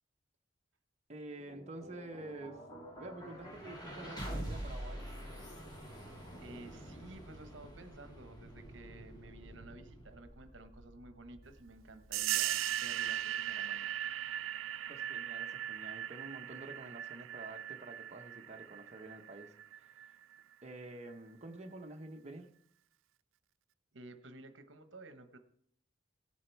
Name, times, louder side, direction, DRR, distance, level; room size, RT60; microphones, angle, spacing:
voice 1, 1.1-2.6 3.0-5.0 14.9-19.9 20.6-22.5, right 2 dB, 35° right, 3 dB, 0.9 m, -48 dB
sound 1, 1.2-13.3, equal, 20° left, 2.5 m, -47 dB
voice 2, 6.4-13.9 23.9-25.4, right 2 dB, 70° right, 9 dB, 1.0 m, -53 dB
sound 2, 12.1-20.4, right 12 dB, 85° right, 0.3 m, -38 dB
16.5 x 7.4 x 4.6 m, 0.68 s
head